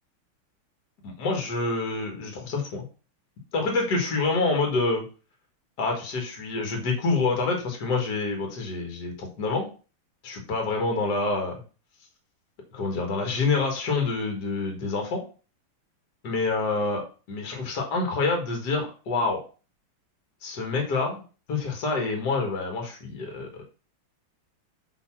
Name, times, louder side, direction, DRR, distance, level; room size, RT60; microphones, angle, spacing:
voice 1, 1.0-2.8 3.5-5.0 5.8-9.7 10.2-11.6 12.7-15.2 16.2-17.0 17.3-19.4 20.4-21.2 21.5-23.6, left 3 dB, 50° left, 2 dB, 2.2 m, -27 dB
5.4 x 4.1 x 6.0 m, 0.36 s
omnidirectional pair, 2.3 m